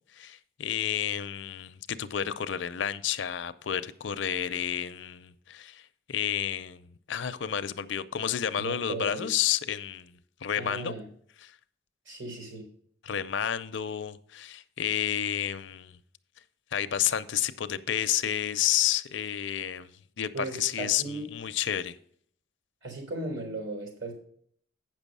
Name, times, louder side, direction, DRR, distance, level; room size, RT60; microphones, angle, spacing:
voice 1, 0.1-5.8 6.1-10.9 11.4-11.5 13.0-16.0 16.7-19.9 20.2-21.9, left 10 dB, 60° left, 0.5 m, -30 dB
voice 2, 8.6-9.3 10.6-11.1 12.1-12.7 20.3-21.3 22.8-24.1, right 2 dB, 70° right, 3.7 m, -37 dB
8.7 x 6.2 x 5.3 m
head